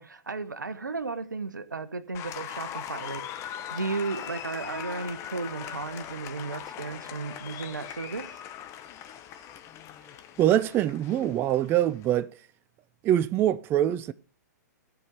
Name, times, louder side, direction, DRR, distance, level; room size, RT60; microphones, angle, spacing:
voice 1, 0.0-3.2 3.7-8.3, right 4 dB, 85° right, 1.1 m, -34 dB
Applause, 2.1-12.2, left 10 dB, 30° left, 1.1 m, -40 dB
voice 2, 10.4-12.3 13.0-14.1, right 12 dB, 25° right, 0.4 m, -24 dB
15.0 x 5.2 x 6.0 m
figure-of-eight pair, 115°, 10 cm